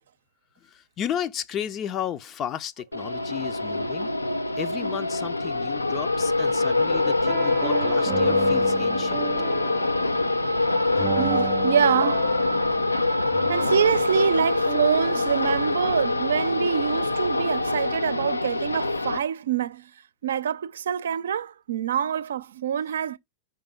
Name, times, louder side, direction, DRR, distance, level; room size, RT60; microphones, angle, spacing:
voice 1, 0.6-4.1 4.6-9.3 11.0-11.1, left 10 dB, 30° left, 0.6 m, -34 dB
sound 1, 2.9-19.2, left 2 dB, 85° left, 0.7 m, -24 dB
sound 2, 6.9-16.3, right 12 dB, 30° right, 0.3 m, -36 dB
voice 2, 11.1-12.3 13.5-19.9 20.2-23.2, right 8 dB, 65° right, 0.6 m, -25 dB
5.9 x 5.1 x 3.4 m
figure-of-eight pair, 90°, 0 cm